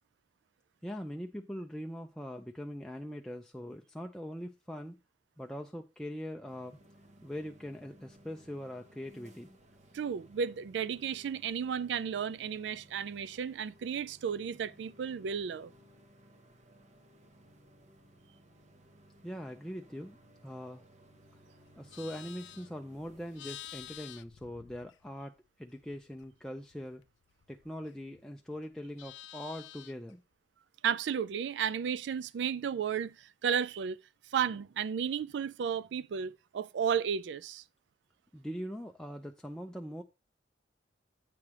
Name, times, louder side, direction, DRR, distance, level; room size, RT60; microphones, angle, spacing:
voice 1, 0.8-5.0 5.4-6.8 7.2-9.5 19.2-20.8 21.8-27.0 27.5-30.2 38.3-40.0, equal, 5° left, 0.4 m, -42 dB
sound 1, 6.5-23.5, right 1 dB, 40° right, 1.0 m, -60 dB
voice 2, 9.9-15.7 30.8-34.0 34.3-37.6, right 7 dB, 70° right, 0.3 m, -33 dB
Livestock farm animals working animals, 21.7-25.4 25.7-28.2 28.5-30.1, left 13 dB, 75° left, 0.4 m, -51 dB
8.6 x 3.3 x 5.9 m
head